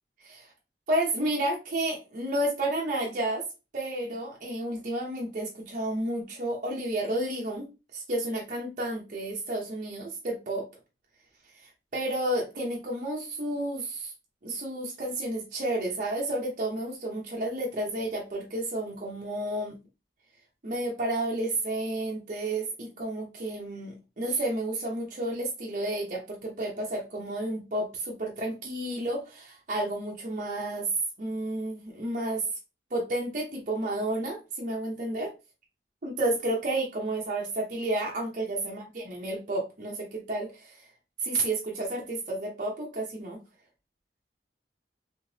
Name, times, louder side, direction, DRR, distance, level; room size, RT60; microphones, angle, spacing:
voice 1, 0.9-3.4 3.7-10.6 11.6-14.1 14.4-19.7 20.6-30.9 31.2-32.4 32.9-35.3 36.0-40.8 41.2-43.4, right 1 dB, 45° right, -2 dB, 0.8 m, -31 dB
3.6 x 2.8 x 2.7 m, 0.28 s
head